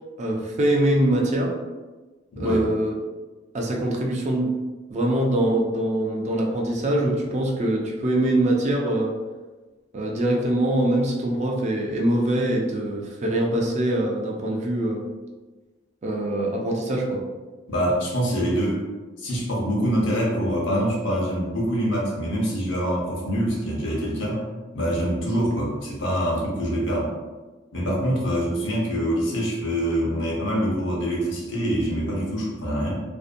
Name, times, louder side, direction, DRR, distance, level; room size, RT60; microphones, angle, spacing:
voice 1, 0.2-1.5 2.4-2.9 3.5-4.5 4.9-9.1 9.9-15.0 16.0-17.2, right 1 dB, 35° right, 0 dB, 0.4 m, -23 dB
voice 2, 17.7-18.8 19.2-24.4 24.7-27.1 27.7-33.0, equal, 75° left, -3 dB, 0.8 m, -25 dB
2.6 x 2.2 x 2.5 m, 1.3 s
head